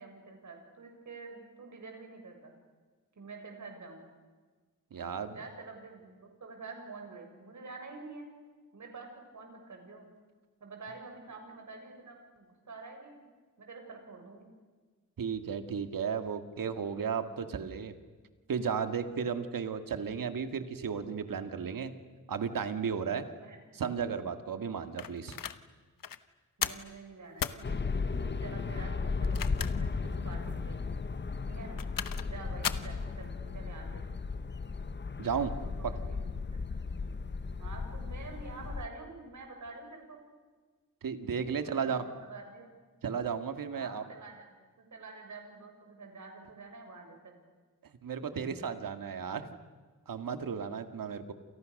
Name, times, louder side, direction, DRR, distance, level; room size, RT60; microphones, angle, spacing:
voice 1, 0.0-2.5 3.2-4.1 5.2-8.3 8.7-10.0 10.6-13.2 13.6-14.5 23.4-23.6 26.6-27.8 28.2-30.9 31.5-31.8 32.2-34.1 35.6-36.4 37.0-37.2 37.6-40.2 41.6-42.7 43.7-44.5 44.8-47.4, right 3 dB, 60° right, 3 dB, 6.9 m, -47 dB
voice 2, 4.9-5.4 15.2-17.9 18.5-21.9 22.3-23.3 23.8-25.4 35.2-35.5 41.0-42.0 43.0-44.0 48.0-49.5 50.1-51.3, right 6 dB, 90° right, 9 dB, 2.1 m, -34 dB
sound 1, 25.0-25.6 26.0-26.2 26.6-26.9 27.4-27.6 29.1-29.9 30.3-30.4 31.5-32.3 32.6-32.9, left 8 dB, 80° left, 1.2 m, -35 dB
sound 2, 27.6-38.9, left 4 dB, 35° left, 1.0 m, -35 dB
29.5 x 28.5 x 6.7 m, 1.4 s
wide cardioid pair, 150°, 33 cm